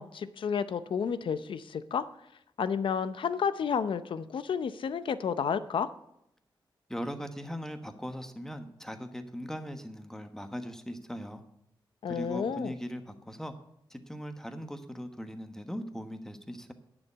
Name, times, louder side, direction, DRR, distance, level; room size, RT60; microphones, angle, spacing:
voice 1, 0.0-2.0 2.6-5.9 12.0-12.7, left 7 dB, 75° left, 13 dB, 0.7 m, -31 dB
voice 2, 6.9-11.4 12.1-13.5 13.9-16.7, equal, 5° left, 7 dB, 1.2 m, -39 dB
10.5 x 7.1 x 8.1 m, 0.78 s
wide cardioid pair, 105°, 9 cm